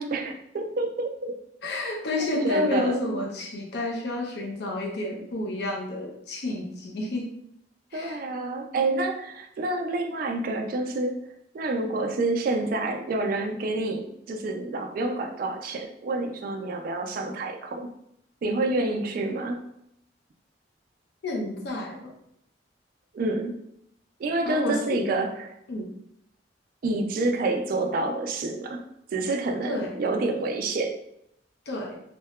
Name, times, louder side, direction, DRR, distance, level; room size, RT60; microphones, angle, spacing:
voice 1, 0.1-1.4 2.2-3.1 7.9-11.2 11.5-17.9 18.4-19.6 23.1-23.6 24.2-25.5 26.8-28.8 29.1-31.0, right 2 dB, 50° right, 3 dB, 0.3 m, -28 dB
voice 2, 1.6-7.3 7.9-8.2 21.2-22.1 24.5-25.0 25.7-25.9 29.6-30.0 31.7-32.0, left 2 dB, 65° left, -1 dB, 0.5 m, -30 dB
2.7 x 2.2 x 2.2 m, 0.75 s
head